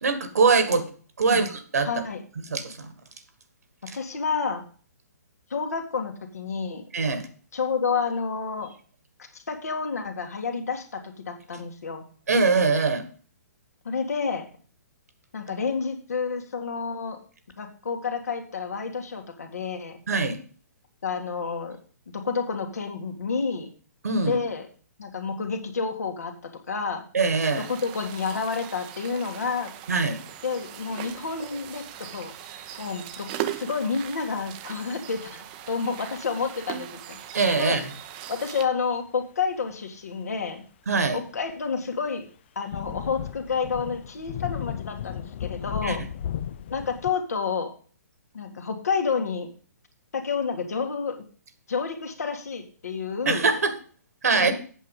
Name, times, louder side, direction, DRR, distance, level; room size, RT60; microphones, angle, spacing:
voice 1, 0.0-0.9 1.2-1.9 2.5-2.9 3.9-4.0 6.9-7.3 12.3-13.1 20.1-20.4 24.0-24.4 27.1-27.7 29.9-30.2 37.3-37.8 40.9-41.2 45.8-46.1 53.3-53.7 54.2-54.5, right 4 dB, 65° right, 10 dB, 1.8 m, -23 dB
voice 2, 1.8-2.2 3.8-4.6 5.5-6.9 7.5-8.7 9.2-12.0 13.8-14.5 15.3-17.2 17.6-20.0 21.0-21.8 22.1-23.7 24.3-24.7 25.0-26.3 26.7-27.0 27.7-29.7 30.4-37.2 37.6-37.8 38.3-40.6 41.1-42.3 42.6-46.0 46.7-47.7 48.3-49.5 50.1-51.2 51.7-53.5 54.3-54.5, left 5 dB, 65° left, 5 dB, 2.0 m, -29 dB
sound 1, 27.4-38.7, right 12 dB, 30° right, 0.8 m, -39 dB
sound 2, 38.9-39.0 42.7-47.1, left 10 dB, 40° left, 0.5 m, -34 dB
8.3 x 7.1 x 5.4 m, 0.41 s
figure-of-eight pair, 125°, 9 cm